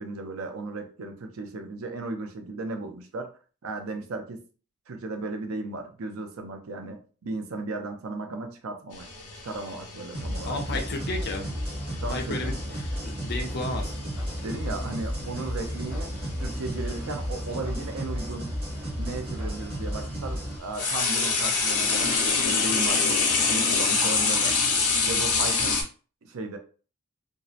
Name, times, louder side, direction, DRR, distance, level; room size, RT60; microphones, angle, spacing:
voice 1, 0.0-3.3 3.6-4.4 4.9-9.1 9.4-10.8 12.0-12.4 14.4-16.1 16.4-18.5 18.9-23.2 23.5-24.6 25.0-25.8 26.2-26.6, right 3 dB, 70° right, 5 dB, 0.5 m, -35 dB
sound 1, 8.9-17.1 18.2-18.3 19.1-25.8, left 4 dB, 85° left, 0.7 m, -27 dB
sound 2, 10.1-20.6, equal, 25° right, 0.7 m, -33 dB
voice 2, 10.5-11.5 12.1-13.9, left 2 dB, 45° left, 3 dB, 0.5 m, -33 dB
2.7 x 2.0 x 2.4 m, 0.38 s
head